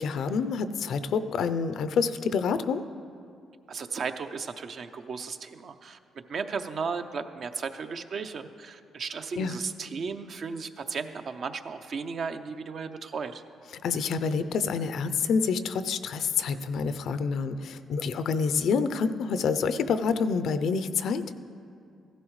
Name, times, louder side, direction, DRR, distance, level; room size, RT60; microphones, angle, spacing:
voice 1, 0.0-2.8 9.4-9.6 13.8-21.2, left 5 dB, 70° left, 12 dB, 0.5 m, -27 dB
voice 2, 3.7-6.0 6.3-13.4, right 5 dB, 55° right, 8 dB, 0.6 m, -35 dB
15.5 x 12.5 x 3.2 m, 2.5 s
cardioid pair, 90°, 0 cm